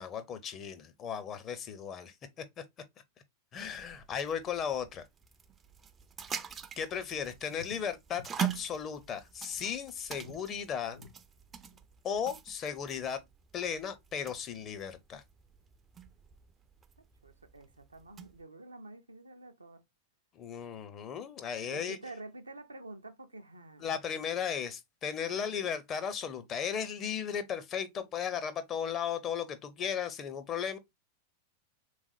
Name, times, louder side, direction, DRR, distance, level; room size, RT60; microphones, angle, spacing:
voice 1, 0.0-2.4 3.5-5.0 6.8-11.0 12.0-13.2 13.5-15.2 20.4-22.0 23.8-30.8, left 7 dB, 30° left, 0.6 m, -36 dB
sound 1, 3.6-18.4, right 9 dB, 20° right, 0.3 m, -44 dB
sound 2, 7.5-8.6 8.9-9.0 9.4-9.5 9.9-10.5 10.9-11.1 11.7-11.8, left 3 dB, 70° left, 0.8 m, -51 dB
voice 2, 17.2-19.8 21.6-23.9 25.2-25.6, right 2 dB, 80° right, 0.5 m, -48 dB
3.5 x 3.1 x 2.4 m
figure-of-eight pair, 90°, 0 cm